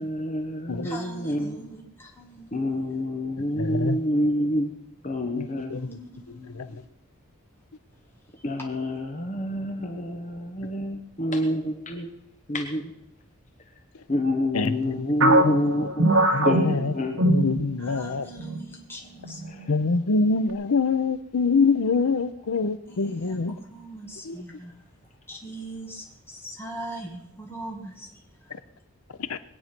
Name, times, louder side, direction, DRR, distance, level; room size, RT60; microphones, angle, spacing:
voice 1, 0.0-1.6 2.5-4.7 5.0-5.8 8.4-12.1 12.5-12.9 14.1-16.1 16.4-17.2 19.4-19.8, left 1 dB, 35° left, 1.0 m, -27 dB
voice 2, 0.8-2.7 5.7-6.8 17.8-19.4 22.9-24.7 25.3-28.1, right 1 dB, 10° left, 1.7 m, -41 dB
voice 3, 3.6-4.0 5.7-5.8 14.5-14.7 15.2-15.5 16.3-16.8 17.3-18.3 19.7-23.5 24.3-24.4 29.3-29.4, left 4 dB, 80° left, 0.7 m, -24 dB
sound 1, 15.2-18.1 18.4-18.6 19.2-19.7, right 1 dB, 80° right, 1.5 m, -22 dB
21.5 x 9.4 x 6.0 m
head